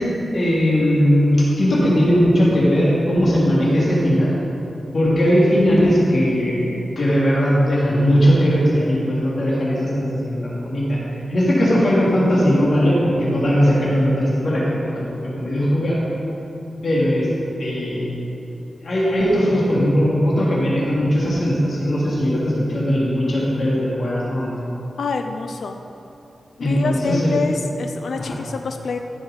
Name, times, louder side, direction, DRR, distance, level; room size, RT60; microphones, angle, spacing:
voice 1, 0.3-4.3 4.9-11.0 11.3-14.6 14.9-16.0 16.8-17.3 17.6-18.1 18.8-24.5 26.6-27.3 28.2-28.4, equal, 60° left, -6 dB, 2.9 m, -18 dB
voice 2, 25.0-25.8 26.6-29.0, left 4 dB, 85° left, 5 dB, 0.5 m, -26 dB
14.5 x 7.0 x 5.1 m, 2.9 s
wide cardioid pair, 105°, 0 cm